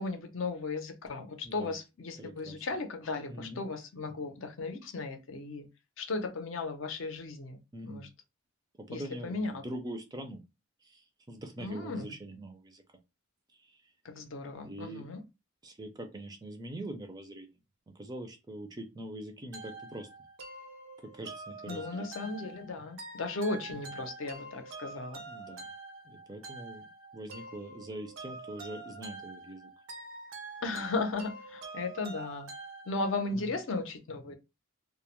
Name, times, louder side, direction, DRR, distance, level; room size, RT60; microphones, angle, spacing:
voice 1, 0.0-5.7 6.0-8.1 8.9-9.5 11.6-12.1 14.0-15.2 21.7-25.2 30.6-32.5 32.9-34.3, left 3 dB, 70° left, 0.5 m, -36 dB
voice 2, 2.2-2.6 3.3-3.6 7.7-8.1 8.9-10.4 10.9-12.8 14.6-15.1 15.6-17.5 18.0-20.1 21.1-22.1 25.3-25.6 26.1-26.9 27.1-29.7 33.3-33.4, right 1 dB, 20° right, 0.4 m, -43 dB
sound 1, 19.5-33.3, right 3 dB, 80° right, 0.6 m, -46 dB
2.2 x 2.0 x 2.9 m
head